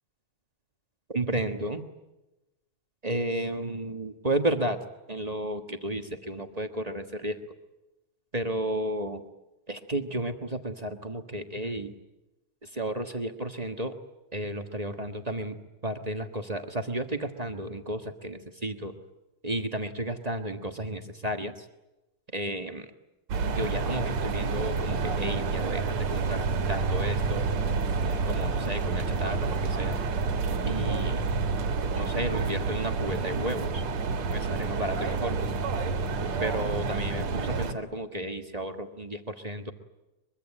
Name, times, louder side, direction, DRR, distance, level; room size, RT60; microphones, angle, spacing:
voice 1, 1.1-1.8 3.0-4.8 5.1-7.4 8.3-9.2 9.7-11.9 12.7-13.9 14.3-15.5 15.8-18.9 19.4-21.5 22.3-22.8 23.4-27.4 28.3-30.0 30.7-31.2 31.9-33.8 34.3-35.4 36.4-39.7, right 1 dB, 45° right, 5 dB, 0.5 m, -32 dB
sound 1, 23.3-37.7, right 4 dB, 70° right, 3.1 m, -29 dB
23.5 x 23.0 x 9.8 m, 1.0 s
omnidirectional pair, 3.3 m